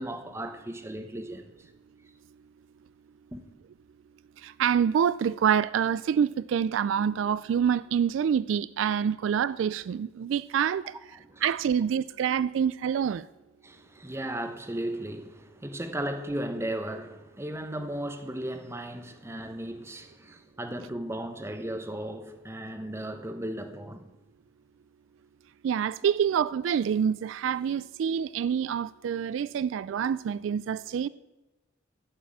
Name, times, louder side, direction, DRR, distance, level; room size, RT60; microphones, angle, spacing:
voice 1, 0.0-1.7 3.3-3.5 11.1-11.4 13.6-24.1, right 1 dB, 15° right, 0.9 m, -36 dB
voice 2, 4.4-10.8 11.4-13.3 25.6-31.1, right 8 dB, 80° right, 0.3 m, -26 dB
12.5 x 5.9 x 8.7 m
head